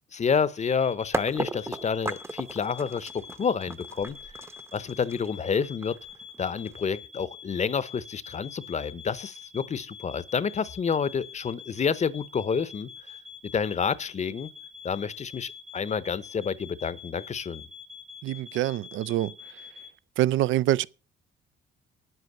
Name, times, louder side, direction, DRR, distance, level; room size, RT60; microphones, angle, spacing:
voice 1, 0.1-3.1 3.4-4.2 4.7-6.0 6.4-12.9 13.5-14.5 14.8-17.6, left 6 dB, 35° left, 0.7 m, -29 dB
sound 1, 0.6-19.9, left 6 dB, 40° right, 1.1 m, -46 dB
sound 2, 1.1-7.0, right 2 dB, 15° right, 0.7 m, -35 dB
voice 2, 18.2-19.3 20.2-20.9, right 14 dB, 80° right, 0.4 m, -25 dB
9.2 x 8.1 x 6.6 m
cardioid pair, 90°, 20 cm